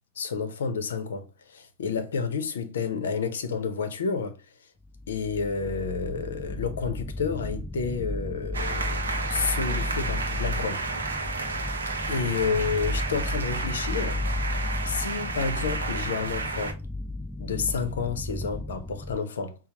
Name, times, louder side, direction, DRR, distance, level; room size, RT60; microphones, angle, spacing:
voice 1, 0.2-4.4 5.1-9.0 9.3-10.8 12.1-14.2 14.9-16.8 17.4-19.5, left 5 dB, 65° left, 0.7 m, -30 dB
sound 1, 4.8-19.2, left 2 dB, 5° left, 0.4 m, -33 dB
sound 2, 8.5-16.7, right 4 dB, 70° right, 0.6 m, -32 dB
5.5 x 2.1 x 2.9 m
figure-of-eight pair, 90°, 0 cm